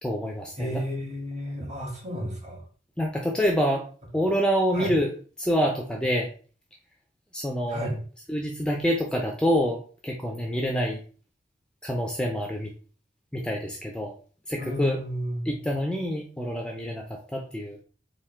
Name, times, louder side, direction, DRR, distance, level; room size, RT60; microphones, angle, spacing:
voice 1, 0.0-0.8 3.0-3.8 4.1-6.3 7.3-7.9 8.3-11.0 11.8-12.7 13.3-14.1 14.5-15.0 15.5-17.0 17.3-17.8, equal, 5° left, 0 dB, 0.4 m, -27 dB
voice 2, 0.5-2.6 4.7-4.9 7.7-8.0 14.6-15.6, equal, 35° right, -3 dB, 1.8 m, -32 dB
3.6 x 2.7 x 4.3 m, 0.41 s
head